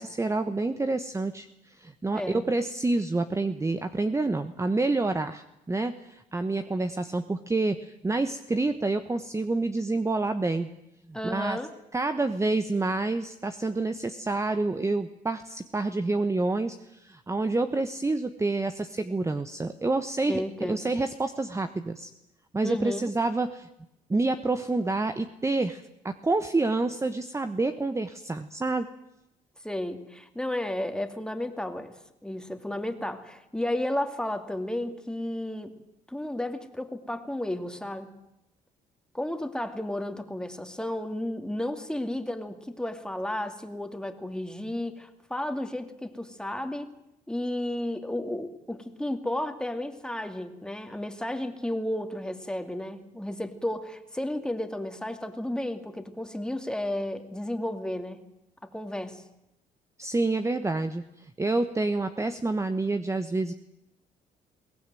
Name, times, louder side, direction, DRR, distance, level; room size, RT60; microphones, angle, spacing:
voice 1, 0.0-10.7 11.1-11.6 11.9-22.1 22.5-23.7 24.1-28.9 60.0-63.5, right 2 dB, 15° right, 9 dB, 1.1 m, -28 dB
voice 2, 11.1-11.7 20.3-20.9 22.6-23.1 29.6-31.9 32.2-35.7 36.1-38.1 39.1-46.9 47.3-58.2 58.6-59.2, left 1 dB, 5° left, 7 dB, 2.6 m, -33 dB
22.5 x 17.5 x 9.2 m, 0.86 s
cardioid pair, 80°, 17 cm